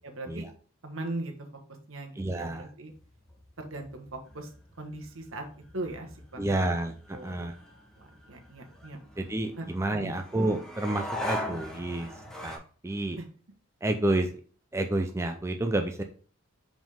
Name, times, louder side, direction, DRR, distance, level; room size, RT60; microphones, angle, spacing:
voice 1, 0.0-0.5 0.8-1.3 1.9-2.9 3.6-4.5 4.8-5.4 5.7-6.7 7.1-7.4 8.0-9.0 9.6-9.7 10.0-10.1 13.2-13.3, right 2 dB, 75° right, 3 dB, 1.3 m, -39 dB
voice 2, 2.2-2.7 6.4-7.6 9.2-12.1 12.4-13.2 13.8-14.3 14.7-16.0, right 1 dB, 15° right, 5 dB, 0.4 m, -30 dB
sound 1, 2.9-12.6, left 1 dB, 5° left, 1.3 m, -41 dB
5.4 x 5.1 x 3.6 m, 0.42 s
head